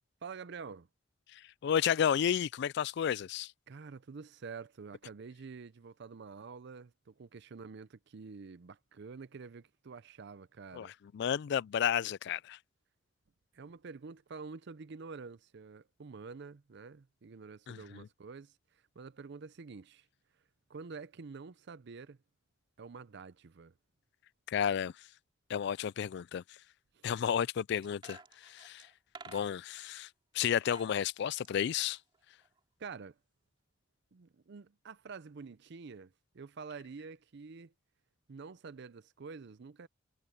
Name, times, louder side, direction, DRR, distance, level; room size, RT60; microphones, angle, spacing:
voice 1, 0.2-0.9 3.7-10.9 13.5-20.1 20.7-22.2 22.8-23.7 26.9-27.0 32.8-33.2 34.1-37.7 38.3-39.9, right 5 dB, 60° right, 0.5 m, -48 dB
voice 2, 1.3-3.5 10.7-12.6 17.7-18.1 24.5-24.9 25.5-26.6 27.0-28.9 29.3-30.1 30.3-32.0, left 8 dB, 60° left, 0.3 m, -32 dB
sound 1, 27.8-29.8 30.5-30.9 31.2-32.6 32.9-33.0, right 4 dB, 25° right, 2.5 m, -53 dB
head